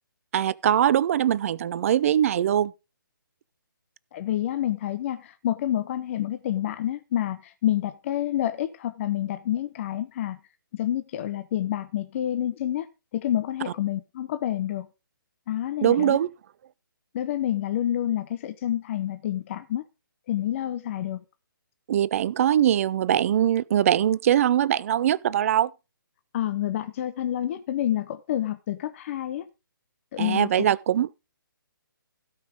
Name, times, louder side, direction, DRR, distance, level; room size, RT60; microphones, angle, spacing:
voice 1, 0.3-2.7 15.8-16.3 21.9-25.7 30.2-31.1, right 10 dB, 40° right, 0.5 m, -22 dB
voice 2, 4.1-10.4 10.7-14.9 15.5-16.2 17.1-19.8 20.3-21.2 26.3-29.5 30.1-30.5, left 12 dB, 35° left, 0.8 m, -28 dB
16.5 x 5.6 x 5.0 m
figure-of-eight pair, 140°, 12 cm